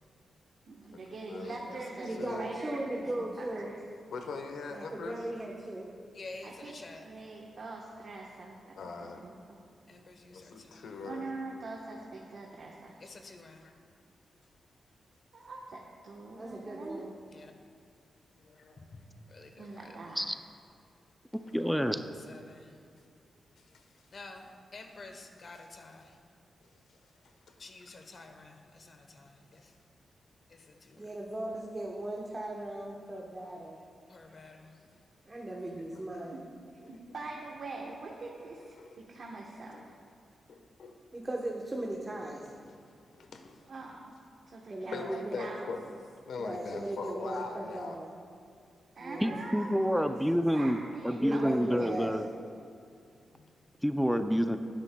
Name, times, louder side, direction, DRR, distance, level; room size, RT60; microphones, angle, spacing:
voice 1, 0.7-3.8 6.4-8.7 9.2-9.6 11.0-13.1 15.3-17.1 18.7-18.8 19.6-20.3 34.3-34.4 36.7-39.9 43.6-44.1 44.5-45.1 45.4-45.7 48.9-50.0 50.3-51.5 51.8-52.1 54.1-54.3, right 3 dB, 55° right, 1.1 m, -44 dB
voice 2, 1.3-1.9 2.2-2.5 4.1-5.2 8.8-9.2 10.3-11.3 13.6-13.7 18.4-18.8 21.6-21.7 23.7-23.8 27.5-27.6 27.9-28.1 35.9-36.0 38.8-39.0 39.7-39.8 40.5-41.0 42.6-42.8 43.1-43.6 44.9-45.8 46.3-48.0 53.3-53.5, left 4 dB, 85° left, 1.1 m, -41 dB
voice 3, 2.0-3.7 4.7-5.9 16.4-17.1 31.0-33.8 35.3-36.4 41.1-42.5 44.7-45.4 46.4-48.1 49.0-49.4 51.2-52.1, right 1 dB, 20° right, 1.0 m, -37 dB
voice 4, 6.1-7.0 9.9-10.8 13.0-13.6 17.3-17.5 18.9-19.0 19.3-19.7 22.3-22.6 24.1-26.1 27.6-29.3 30.5-30.6 30.9-31.0 34.1-34.7, left 3 dB, 45° left, 1.0 m, -49 dB
voice 5, 21.5-22.0 49.2-50.8 51.0-52.3 53.8-54.6, equal, ahead, 0.4 m, -28 dB
18.5 x 10.0 x 2.3 m
wide cardioid pair, 135°, 0 cm